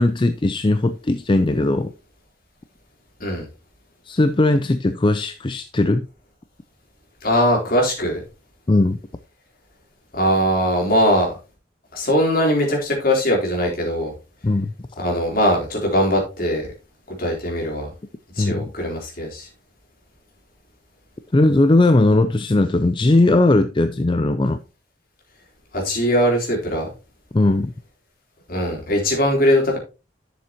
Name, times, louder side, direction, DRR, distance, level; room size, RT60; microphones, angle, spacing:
voice 1, 0.0-1.9 4.1-6.1 8.7-9.0 14.4-14.7 18.4-18.7 21.3-24.6 27.3-27.7, left 2 dB, 25° left, 0.5 m, -18 dB
voice 2, 7.2-8.2 10.1-11.4 11.9-14.1 15.0-16.7 17.1-17.9 18.4-19.5 25.7-26.9 28.5-29.8, equal, 50° left, 3.6 m, -20 dB
11.0 x 7.1 x 2.9 m
head